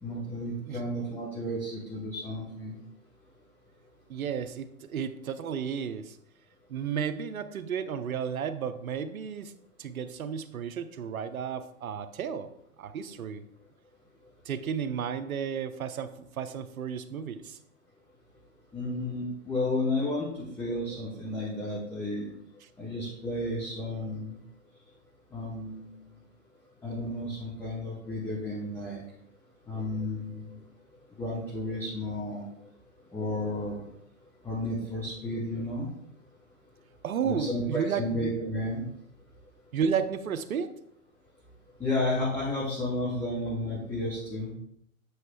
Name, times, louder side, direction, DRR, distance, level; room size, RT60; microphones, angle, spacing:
voice 1, 0.0-2.8 18.7-22.3 22.8-24.3 25.3-25.9 26.8-29.0 29.7-30.6 31.2-32.4 33.1-33.8 34.4-35.9 37.2-38.8 41.8-44.5, left 1 dB, 5° left, -5 dB, 0.6 m, -32 dB
voice 2, 4.1-6.2 6.7-9.5 9.8-12.5 12.8-13.4 14.5-17.6 37.0-38.0 39.7-40.8, right 7 dB, 85° right, 11 dB, 0.8 m, -33 dB
8.1 x 3.1 x 4.6 m, 0.73 s
hypercardioid pair, 145°, 41 cm